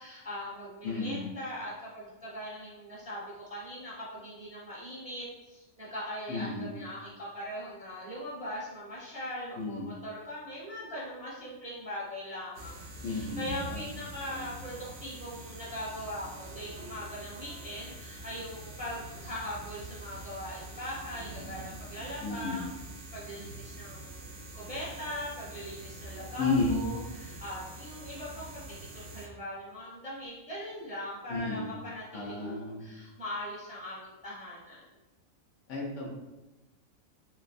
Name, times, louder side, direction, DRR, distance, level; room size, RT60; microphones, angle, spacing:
voice 1, 0.0-22.7 23.1-28.6 28.9-34.8, equal, 5° right, -7 dB, 0.7 m, -41 dB
voice 2, 0.8-1.3 6.3-6.7 9.6-9.8 13.0-13.9 14.3-14.4 22.2-22.6 26.4-26.9 31.3-31.7 32.1-32.8 35.7-36.1, left 3 dB, 70° left, -2 dB, 0.9 m, -32 dB
sound 1, 12.5-29.3, right 2 dB, 65° right, 0.9 m, -44 dB
3.2 x 2.9 x 2.5 m, 1.0 s
omnidirectional pair, 1.4 m